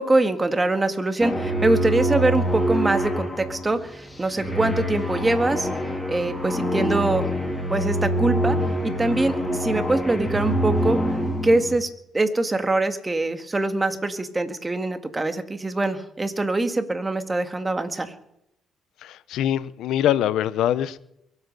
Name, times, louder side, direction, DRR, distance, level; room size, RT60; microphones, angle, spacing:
voice 1, 0.0-5.7 6.1-7.3 7.7-8.6 8.8-11.0 11.4-11.9 12.1-18.1, right 2 dB, 20° right, 8 dB, 2.0 m, -23 dB
sound 1, 1.2-11.7, equal, 15° left, 4.2 m, -25 dB
voice 2, 19.0-21.0, left 11 dB, 80° left, 17 dB, 0.8 m, -23 dB
23.0 x 8.6 x 6.9 m, 0.79 s
supercardioid pair, 75°, 0 cm